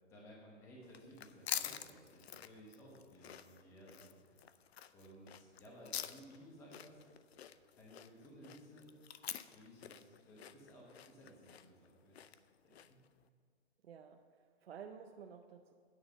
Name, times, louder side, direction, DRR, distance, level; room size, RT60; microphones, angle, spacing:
voice 1, 0.0-4.5 4.9-7.0 7.8-9.0 9.5-12.4 12.6-13.0, equal, 10° left, -3 dB, 1.0 m, -58 dB
sound 1, 0.8-13.1, left 10 dB, 65° left, 0.6 m, -47 dB
voice 2, 13.8-15.7, right 7 dB, 60° right, 4 dB, 0.6 m, -53 dB
9.4 x 5.6 x 8.0 m, 2.1 s
hypercardioid pair, 165°, 34 cm